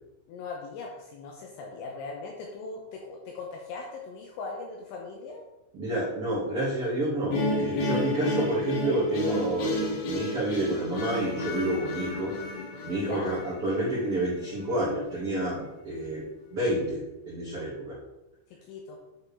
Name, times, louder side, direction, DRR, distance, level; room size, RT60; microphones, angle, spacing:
voice 1, 0.3-5.4 13.0-13.4 18.5-19.0, left 4 dB, 90° left, 0 dB, 2.6 m, -39 dB
voice 2, 5.7-12.3 12.8-18.0, right 1 dB, 65° right, -10 dB, 1.4 m, -29 dB
sound 1, 7.3-14.4, left 1 dB, 70° left, 2.5 m, -31 dB
10.0 x 4.5 x 3.4 m, 1.0 s
omnidirectional pair, 5.9 m